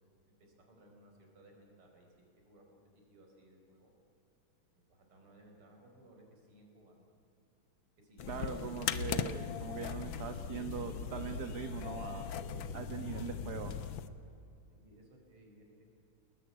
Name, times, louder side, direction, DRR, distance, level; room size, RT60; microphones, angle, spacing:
voice 1, 0.4-2.7 3.1-3.9 4.7-7.1 8.0-8.8 12.9-13.2 14.1-15.8, right 1 dB, 75° right, 1 dB, 5.8 m, -61 dB
sound 1, 8.2-14.1, left 7 dB, 65° left, 1.7 m, -39 dB
voice 2, 8.3-12.3 12.7-13.7, right 7 dB, 50° right, 6 dB, 1.7 m, -41 dB
29.5 x 21.0 x 9.5 m, 2.7 s
omnidirectional pair, 2.4 m